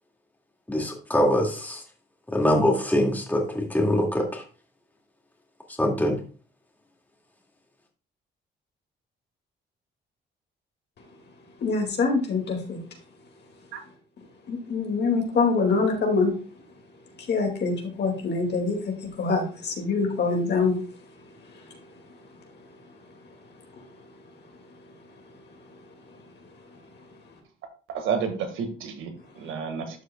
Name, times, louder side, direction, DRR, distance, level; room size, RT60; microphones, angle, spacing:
voice 1, 0.7-1.8 2.3-4.4 5.8-6.2, equal, 10° left, 2.1 m, -23 dB
voice 2, 11.6-12.8 14.5-16.4 17.2-20.8 21.6-21.7, left 4 dB, 60° left, 2.2 m, -25 dB
voice 3, 27.9-30.0, right 6 dB, 85° right, 1.7 m, -31 dB
12.0 x 6.4 x 2.3 m
cardioid pair, 90°, 20 cm